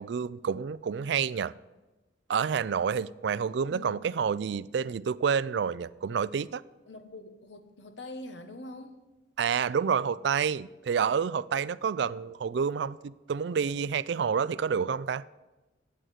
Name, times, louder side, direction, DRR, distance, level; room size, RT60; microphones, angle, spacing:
voice 1, 0.0-1.5 2.3-6.6 9.4-15.3, right 6 dB, 65° right, 0.3 m, -29 dB
voice 2, 3.6-4.0 6.9-9.0, left 2 dB, 70° left, 1.1 m, -44 dB
8.7 x 7.8 x 9.2 m
head